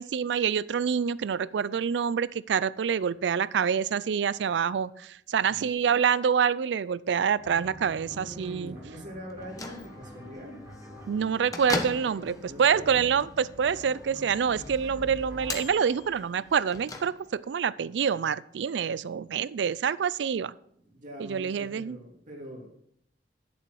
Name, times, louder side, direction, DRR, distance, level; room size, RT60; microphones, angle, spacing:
voice 1, 0.0-8.7 11.1-20.5 21.2-22.0, right 7 dB, 75° right, 19 dB, 0.4 m, -27 dB
sound 1, 7.4-15.6, equal, 15° right, 2.7 m, -47 dB
voice 2, 8.0-10.6 12.0-13.0 20.9-22.7, equal, 45° right, -1 dB, 2.8 m, -43 dB
Bell / Microwave oven, 9.3-17.6, left 2 dB, 20° left, 1.0 m, -40 dB
11.5 x 7.1 x 4.6 m, 0.70 s
head